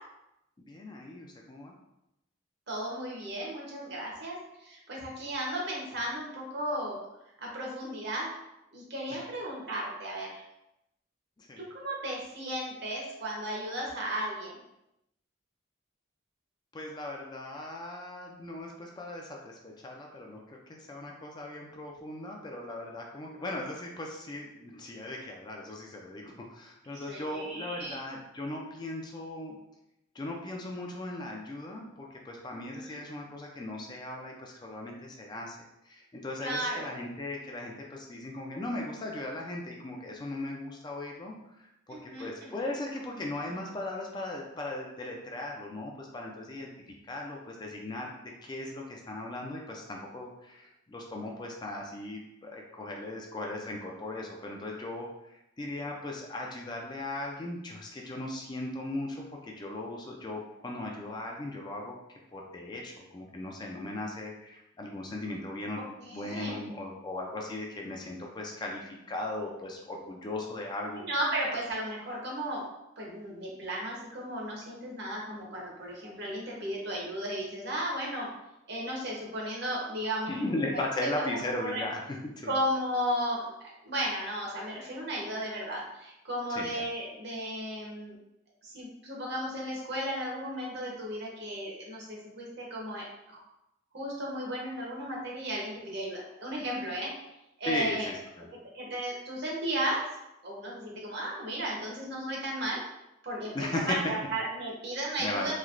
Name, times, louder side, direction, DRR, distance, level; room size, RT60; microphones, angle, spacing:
voice 1, 0.7-1.7 9.1-9.2 11.4-11.6 16.7-29.6 30.2-35.6 35.9-41.3 41.9-46.7 47.1-55.1 55.6-61.9 62.3-71.0 80.3-82.5 86.6-86.8 97.7-98.5 103.5-104.0 105.2-105.5, left 2 dB, 20° left, 0 dB, 0.3 m, -38 dB
voice 2, 2.7-4.4 4.6-7.0 7.4-8.3 8.7-10.4 11.6-14.6 27.1-28.0 32.5-33.0 36.4-36.8 41.9-42.6 66.0-66.6 70.9-72.7 73.0-78.3 78.7-80.6 81.0-81.8 82.4-88.1 88.6-93.4 93.9-97.1 97.6-98.1 98.7-100.0 100.4-102.8 103.2-105.5, right 1 dB, 60° right, -3 dB, 0.9 m, -35 dB
3.2 x 2.8 x 2.5 m, 0.88 s
head